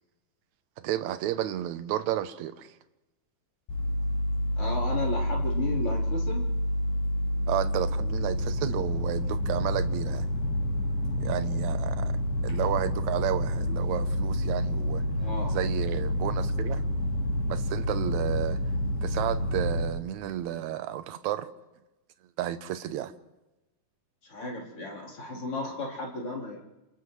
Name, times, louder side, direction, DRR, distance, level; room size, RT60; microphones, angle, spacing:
voice 1, 0.8-2.7 7.5-10.3 11.2-12.1 12.4-15.0 15.5-16.9 17.5-18.6 19.0-21.5 22.4-23.1, right 12 dB, 75° right, 1.9 m, -32 dB
sound 1, 3.7-19.8, left 1 dB, 70° left, 8.5 m, -28 dB
voice 2, 4.6-6.4 15.2-15.6 24.2-26.6, left 2 dB, 40° left, 4.5 m, -34 dB
30.0 x 27.0 x 3.2 m
omnidirectional pair, 4.0 m